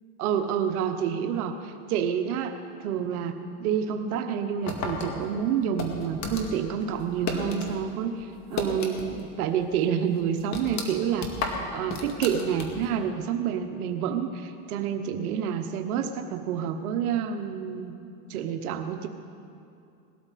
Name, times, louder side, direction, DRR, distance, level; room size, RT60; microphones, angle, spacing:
voice 1, 0.2-17.9 18.3-19.1, right 8 dB, 80° right, 6 dB, 1.1 m, -28 dB
sound 1, 4.7-7.8 8.1-9.3 9.6-9.7 10.1-13.0, left 4 dB, 40° left, 2.2 m, -33 dB
19.5 x 13.0 x 4.2 m, 2.6 s
supercardioid pair, 120°, 43 cm